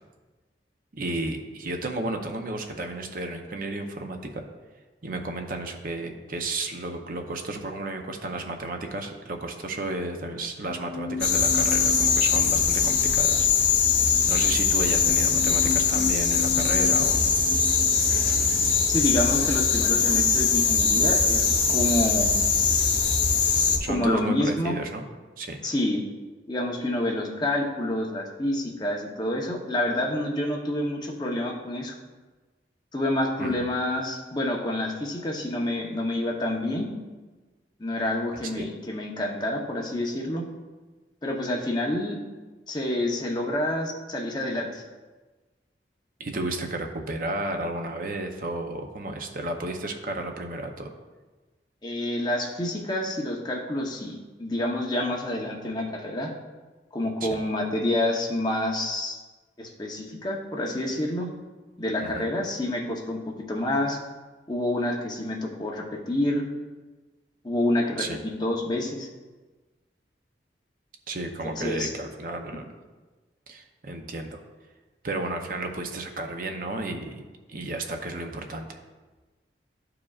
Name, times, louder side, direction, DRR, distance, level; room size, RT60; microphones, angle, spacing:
voice 1, 0.9-4.5 5.0-13.5 14.3-17.3 23.8-25.1 25.4-25.6 33.4-33.6 38.6-38.7 46.2-50.9 57.2-57.3 62.0-62.2 68.0-68.2 71.1-72.6 73.5-74.4 75.0-77.2 77.5-78.8, right 2 dB, 50° right, 4 dB, 0.7 m, -32 dB
sound 1, 10.6-20.0 20.2-20.3, left 4 dB, ahead, 2.3 m, -37 dB
sound 2, 11.2-23.8, left 5 dB, 90° left, 1.0 m, -22 dB
voice 2, 18.9-22.4 23.9-24.8 25.6-26.0 26.5-32.0 32.9-36.9 37.8-40.4 41.2-42.2 42.7-44.8 51.8-56.3 56.9-59.2 59.6-61.3 61.8-64.0 64.5-66.4 67.4-69.1 71.4-71.9, left 1 dB, 25° left, -1 dB, 0.9 m, -28 dB
12.5 x 4.9 x 2.4 m, 1.3 s
head